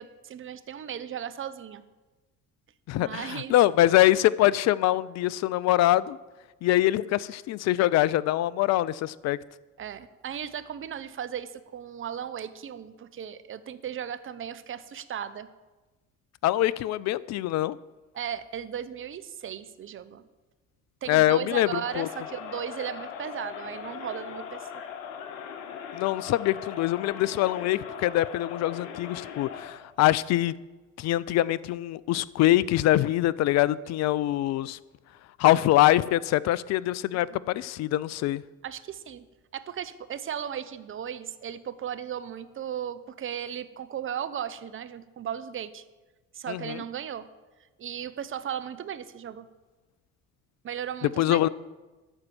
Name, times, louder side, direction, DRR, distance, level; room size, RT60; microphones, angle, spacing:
voice 1, 0.0-1.8 2.9-3.5 9.8-15.5 18.1-20.2 21.0-24.8 37.1-37.4 38.6-39.3 39.5-45.8 46.3-47.3 47.8-49.5 50.6-51.5, right 9 dB, 30° right, 0.7 m, -36 dB
voice 2, 2.9-6.2 6.6-9.4 16.4-17.8 21.1-22.1 25.9-30.5 31.0-34.8 35.4-38.4 46.5-46.8 51.2-51.5, left 15 dB, 40° left, 0.4 m, -24 dB
Crowd, 21.7-29.9, left 8 dB, 70° left, 1.0 m, -40 dB
12.5 x 4.5 x 7.4 m
figure-of-eight pair, 55°, 40 cm